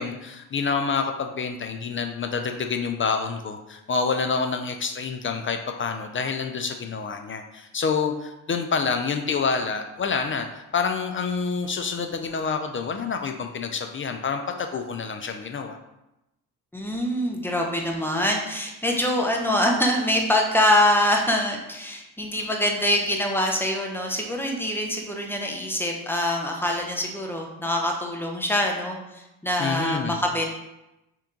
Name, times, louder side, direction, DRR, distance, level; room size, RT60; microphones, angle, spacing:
voice 1, 0.0-15.8 29.6-30.2, left 5 dB, 30° left, 5 dB, 0.4 m, -27 dB
voice 2, 16.7-30.5, left 1 dB, 5° left, 1 dB, 0.8 m, -24 dB
3.4 x 2.9 x 3.7 m, 0.93 s
supercardioid pair, 70°, 40 cm